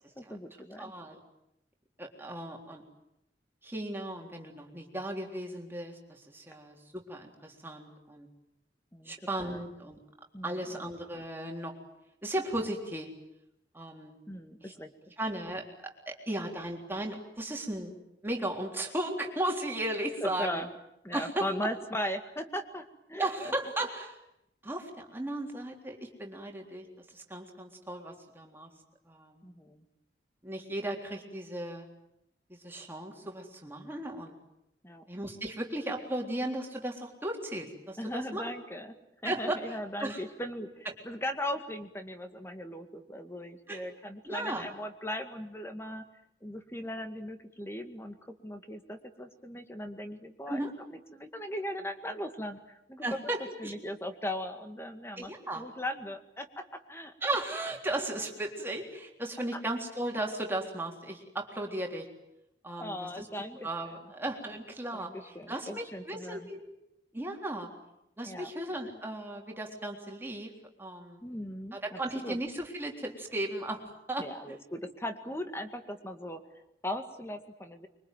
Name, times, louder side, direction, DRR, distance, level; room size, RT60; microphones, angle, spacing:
voice 1, 0.2-0.9 8.9-9.1 9.4-9.6 10.3-10.8 14.3-14.9 20.2-20.7 21.0-23.3 29.4-29.9 34.8-35.0 38.0-38.9 39.2-46.0 46.4-50.6 50.9-53.2 53.6-57.1 59.5-59.6 62.8-64.0 64.9-66.5 68.2-68.5 71.2-72.4 74.2-77.9, left 1 dB, 15° left, 7 dB, 2.1 m, -38 dB
voice 2, 0.8-1.2 2.0-2.8 3.6-8.3 9.1-10.0 10.4-11.7 12.2-13.1 13.7-14.2 14.6-14.7 15.2-17.9 18.2-20.6 21.1-21.7 23.2-24.2 24.6-26.9 27.1-28.7 29.1-29.4 30.4-31.9 32.5-34.3 35.1-38.5 39.2-39.6 40.0-40.2 43.7-43.8 44.3-44.7 50.5-50.7 53.0-53.7 55.2-55.6 57.2-62.1 62.6-65.1 65.5-66.7 67.1-67.7 68.2-70.5 70.8-71.2 71.7-73.8 74.1-74.3, right 1 dB, 10° right, 1 dB, 3.7 m, -36 dB
25.5 x 24.0 x 9.3 m, 0.84 s
head